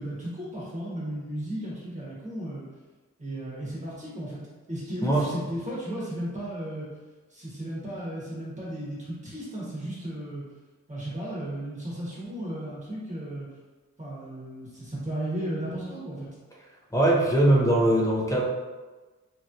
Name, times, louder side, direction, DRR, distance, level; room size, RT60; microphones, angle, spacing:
voice 1, 0.0-2.6 3.2-4.4 4.7-6.9 7.3-10.4 10.9-13.5 14.0-16.3, right 1 dB, 25° right, -7 dB, 1.2 m, -34 dB
voice 2, 16.9-18.4, right 1 dB, 10° left, -3 dB, 0.6 m, -21 dB
3.0 x 2.8 x 2.5 m, 1.3 s
wide cardioid pair, 120°, 31 cm